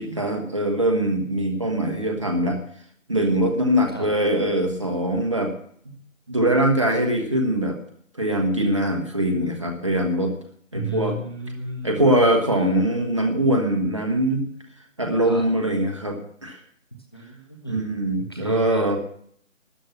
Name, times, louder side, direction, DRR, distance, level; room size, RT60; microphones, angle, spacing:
voice 1, 0.0-2.6 3.1-5.5 5.8-5.9 6.3-7.8 8.2-10.3 10.7-11.1 11.8-14.5 15.0-16.6 17.7-19.0, right 1 dB, 25° right, 3 dB, 1.4 m, -22 dB
voice 2, 10.7-11.9 15.2-15.4 17.1-17.9 18.2-18.8, right 2 dB, 20° left, 2 dB, 1.0 m, -33 dB
13.0 x 10.0 x 7.0 m, 0.62 s
figure-of-eight pair, 165°, 39 cm